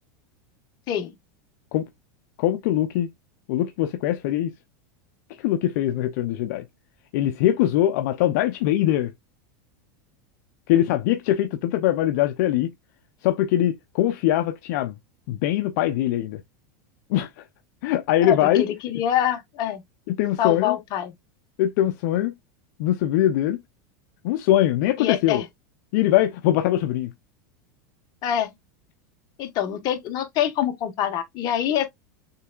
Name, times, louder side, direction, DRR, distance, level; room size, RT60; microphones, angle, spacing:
voice 1, 2.4-3.1 3.5-4.5 5.4-6.6 7.1-9.1 10.7-12.7 13.2-14.9 15.3-16.4 17.1-17.3 17.8-18.6 20.1-20.8 21.6-22.3 22.8-23.6 24.2-25.4 25.9-27.1, left 12 dB, 65° left, 0.6 m, -22 dB
voice 2, 18.2-19.8 20.4-21.1 25.0-25.4 28.2-28.5 29.4-31.9, left 10 dB, 45° left, 1.3 m, -25 dB
6.7 x 3.3 x 2.3 m
supercardioid pair, 130°, 10 cm